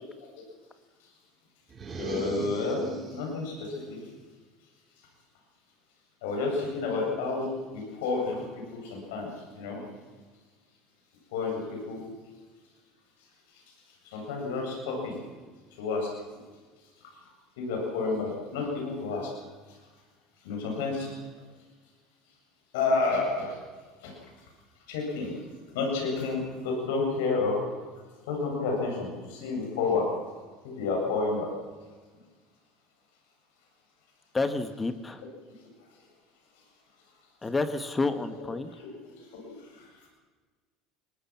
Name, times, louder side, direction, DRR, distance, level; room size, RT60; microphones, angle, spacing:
sound 1, 1.7-3.3, right 3 dB, 30° right, 5.7 m, -38 dB
voice 1, 2.0-4.0 6.2-7.5 7.7-8.3 8.7-9.3 9.6-9.8 11.3-12.0 14.1-15.2 15.8-16.1 17.6-19.3 20.4-21.1 22.7-23.5 24.0-24.1 24.9-25.3 25.7-27.6 28.3-30.1 30.6-31.5 39.4-39.5, left 3 dB, 80° left, 0 dB, 7.8 m, -30 dB
voice 2, 34.3-35.2 37.4-38.7, left 3 dB, 20° left, 9 dB, 1.8 m, -29 dB
22.5 x 19.5 x 6.2 m, 1.4 s
hypercardioid pair, 85°, 0 cm